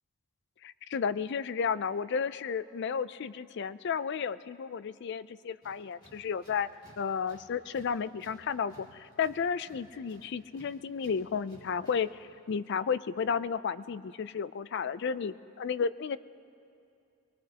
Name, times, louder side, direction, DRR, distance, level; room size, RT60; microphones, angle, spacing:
voice 1, 0.6-6.7 7.0-16.2, left 6 dB, 50° left, 15 dB, 0.3 m, -33 dB
Tools, 5.6-12.2, equal, 20° left, 2.3 m, -59 dB
22.0 x 22.0 x 2.9 m, 2.5 s
head